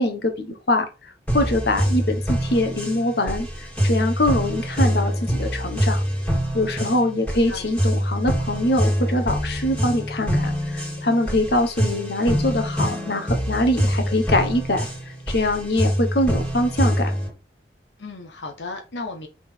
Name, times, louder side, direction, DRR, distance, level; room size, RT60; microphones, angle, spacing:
voice 1, 0.0-6.0 6.5-14.9 15.3-17.1, left 1 dB, 65° left, 1.2 m, -23 dB
sound 1, 1.3-17.3, equal, 5° left, 1.9 m, -25 dB
voice 2, 6.7-7.1 7.5-7.7 18.0-19.3, left 3 dB, 85° left, 1.1 m, -35 dB
5.9 x 3.9 x 4.4 m
head